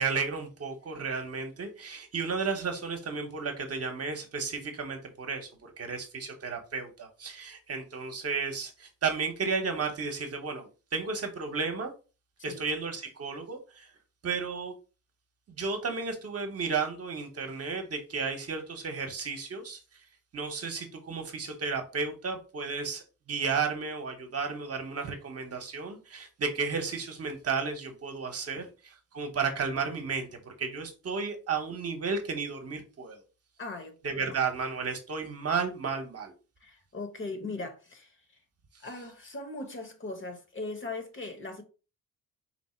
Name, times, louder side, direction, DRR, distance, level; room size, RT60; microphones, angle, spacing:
voice 1, 0.0-11.9 12.4-13.9 14.2-14.7 15.5-19.8 20.3-33.2 34.0-36.3, right 5 dB, 45° right, 1.0 m, -33 dB
voice 2, 33.6-34.0 34.3-34.4 36.6-38.2 38.8-41.6, left 3 dB, 35° left, 1.0 m, -39 dB
4.3 x 2.0 x 4.3 m
cardioid pair, 95°, 35 cm